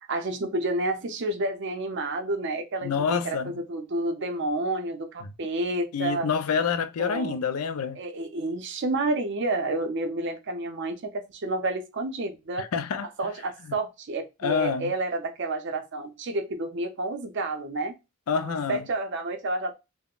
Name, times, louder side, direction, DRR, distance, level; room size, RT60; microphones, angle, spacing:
voice 1, 0.1-6.3 7.0-7.4 8.0-12.7 13.2-17.9 18.4-19.7, right 2 dB, 55° right, 0.5 m, -30 dB
voice 2, 2.8-3.6 5.2-5.3 5.9-8.0 12.6-13.1 14.4-14.9 18.3-18.9, left 6 dB, 85° left, 0.4 m, -27 dB
3.5 x 2.1 x 2.3 m
head